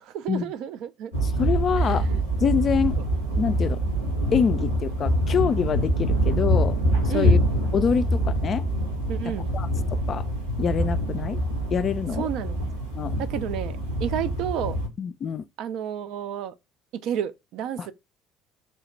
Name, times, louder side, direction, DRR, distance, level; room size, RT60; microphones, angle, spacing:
voice 1, 0.0-1.1 1.8-2.0 7.1-7.4 9.1-9.5 12.2-12.6 13.2-14.8 15.6-16.5 17.0-17.9, right 9 dB, 60° right, 0.4 m, -31 dB
sound 1, 1.1-14.9, right 1 dB, 90° right, 1.3 m, -25 dB
voice 2, 1.2-2.1 2.4-3.0 3.4-3.8 4.3-7.4 7.7-8.6 9.5-10.3 10.6-11.4 11.7-12.3 13.0-13.1 15.0-15.4 17.8-17.9, left 7 dB, 40° left, 0.3 m, -26 dB
3.2 x 2.8 x 4.2 m
figure-of-eight pair, 55°, 0 cm